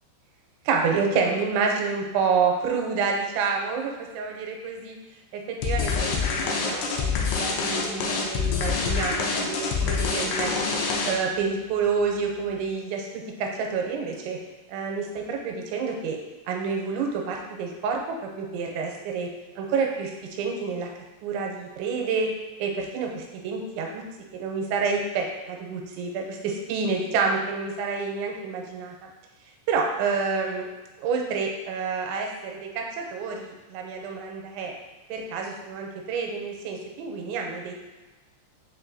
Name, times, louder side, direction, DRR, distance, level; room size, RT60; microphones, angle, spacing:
voice 1, 0.7-5.0 5.3-10.7 11.0-13.1 13.4-14.4 14.7-16.2 16.5-19.3 19.6-20.9 21.2-22.3 22.6-24.0 24.3-29.0 29.7-30.7 31.0-34.7 35.1-37.7, right 5 dB, 85° right, 1 dB, 2.9 m, -28 dB
sound 1, 5.6-11.4, left 5 dB, 85° left, 2.3 m, -26 dB
7.2 x 2.6 x 2.6 m, 1.2 s
omnidirectional pair, 5.3 m